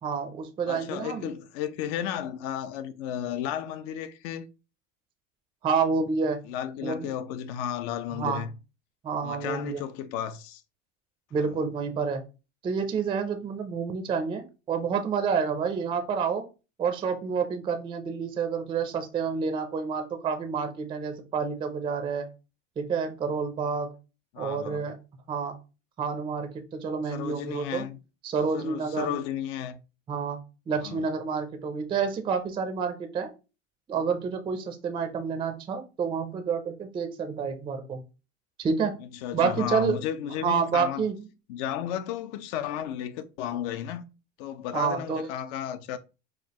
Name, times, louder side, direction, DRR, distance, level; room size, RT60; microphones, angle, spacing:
voice 1, 0.0-1.3 5.6-6.4 6.8-7.1 8.1-8.5 9.0-9.8 11.3-12.2 12.6-16.4 16.8-22.3 22.8-23.9 24.4-25.0 25.3-25.6 26.0-27.8 28.2-29.2 30.1-30.4 30.7-33.3 33.9-38.0 38.6-39.0 39.3-40.0 40.4-41.2 44.7-45.3, right 5 dB, 15° right, 0.4 m, -29 dB
voice 2, 0.6-4.5 6.4-8.5 9.2-10.6 11.4-11.6 24.3-24.9 27.0-28.0 28.5-29.8 30.8-31.1 39.0-41.0 41.5-44.0 44.4-46.0, left 10 dB, 65° left, 0.6 m, -33 dB
4.9 x 2.4 x 2.8 m
supercardioid pair, 130°, 36 cm